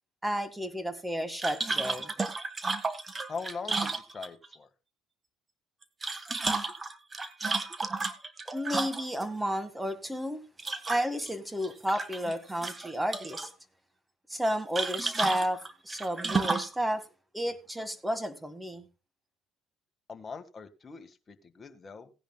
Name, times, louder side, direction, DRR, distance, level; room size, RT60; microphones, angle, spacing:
voice 1, 0.2-2.1 8.5-10.4 10.9-13.5 14.3-17.0 17.3-18.9, equal, 5° right, 1.8 m, -32 dB
sound 1, 1.4-4.5 5.8-9.3 10.6-11.3 11.6-12.3 12.6-13.5 14.7-16.8, right 3 dB, 25° right, 1.7 m, -32 dB
voice 2, 3.3-4.7 20.1-22.1, left 5 dB, 30° left, 1.7 m, -41 dB
17.5 x 10.0 x 2.3 m
supercardioid pair, 75°, 0 cm